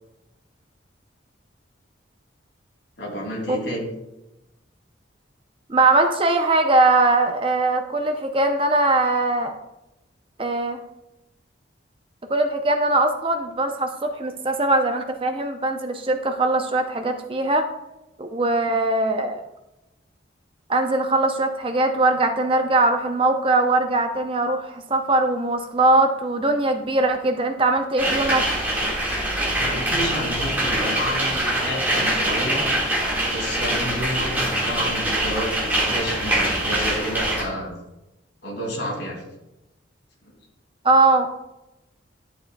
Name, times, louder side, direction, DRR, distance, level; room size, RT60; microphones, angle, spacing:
voice 1, 3.0-3.8 29.5-32.6 33.3-37.7 38.4-39.2 40.2-40.3, equal, 65° left, -2 dB, 2.7 m, -30 dB
voice 2, 5.7-9.6 10.4-10.8 12.3-17.7 18.2-19.4 20.7-28.5 40.8-41.3, right 2 dB, 30° right, 6 dB, 0.6 m, -21 dB
sound 1, 28.0-37.4, right 1 dB, 10° right, 1.8 m, -24 dB
11.0 x 7.2 x 2.3 m, 0.93 s
head